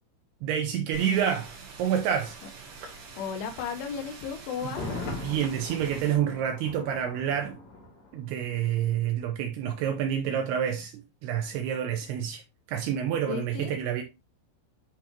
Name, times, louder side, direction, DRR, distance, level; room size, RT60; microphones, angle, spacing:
voice 1, 0.4-1.5 1.8-2.4 4.6-4.7 5.1-7.6 8.1-12.4 12.7-14.0, right 9 dB, 85° right, 2.3 m, -28 dB
sound 1, 0.9-6.2, right 4 dB, 60° right, 3.1 m, -46 dB
voice 2, 3.2-4.9 13.3-13.8, left 6 dB, 85° left, 3.5 m, -34 dB
Thunder, 4.6-8.5 8.8-8.9, left 3 dB, 35° left, 2.7 m, -40 dB
10.0 x 3.5 x 2.9 m
omnidirectional pair, 5.5 m